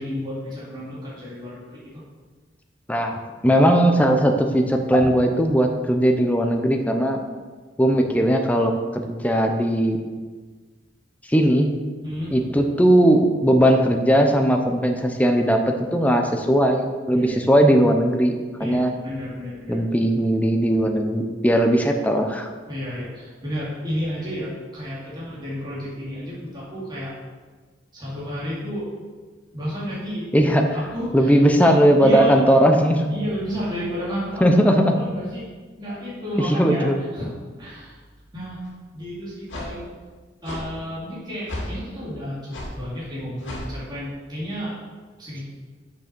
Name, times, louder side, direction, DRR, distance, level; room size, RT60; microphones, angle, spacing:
voice 1, 0.0-1.8 5.0-5.1 12.0-12.4 17.1-17.5 18.6-19.8 22.7-27.1 27.9-28.9 29.5-30.3 30.6-32.4 33.1-34.5 34.9-35.5 35.8-37.3 37.6-38.0 38.3-38.6 38.9-39.9 40.4-44.7 45.2-45.4, equal, 25° right, -9 dB, 2.5 m, -32 dB
voice 2, 3.4-7.2 7.8-10.0 11.3-11.7 12.3-18.3 18.6-18.9 19.7-22.5 30.3-30.6 31.1-33.1 34.4-34.9 36.6-37.0, equal, 10° left, 3 dB, 0.7 m, -18 dB
sound 1, 38.6-38.7 39.5-39.7 40.4-40.6 41.5-41.7 42.5-42.7 43.4-43.7, left 1 dB, 85° left, 2.2 m, -32 dB
6.5 x 6.1 x 6.1 m, 1.4 s
head